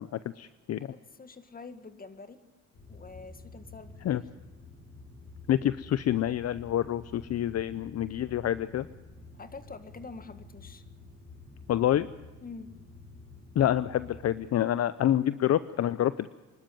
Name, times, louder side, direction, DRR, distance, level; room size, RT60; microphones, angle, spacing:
voice 1, 0.0-0.9 4.0-4.2 5.5-8.9 11.7-12.1 13.6-16.3, left 11 dB, 55° left, 15 dB, 0.7 m, -27 dB
voice 2, 0.9-2.4 2.9-4.2 9.3-10.8 12.4-12.7, left 4 dB, 30° left, 11 dB, 1.8 m, -46 dB
sound 1, 2.7-14.3, left 3 dB, 80° left, 5.8 m, -49 dB
26.0 x 12.5 x 9.1 m, 1.2 s
cardioid pair, 90°, 30 cm